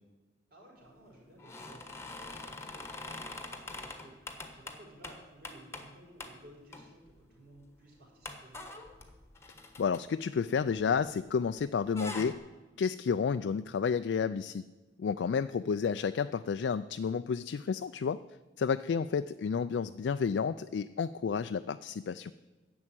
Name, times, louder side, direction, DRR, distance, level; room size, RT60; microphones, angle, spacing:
voice 1, 0.5-8.5 11.9-12.0 15.3-15.5, right 1 dB, 60° right, -3 dB, 4.8 m, -56 dB
sound 1, 1.4-5.9 6.2-6.4 6.7-7.2 7.6-7.7 8.2-11.3 11.6-12.3, left 2 dB, 15° left, 1.2 m, -44 dB
voice 2, 9.8-12.4 12.8-14.6 15.0-18.2 18.6-22.3, left 6 dB, 70° left, 11 dB, 0.3 m, -31 dB
11.0 x 7.2 x 8.9 m, 1.2 s
head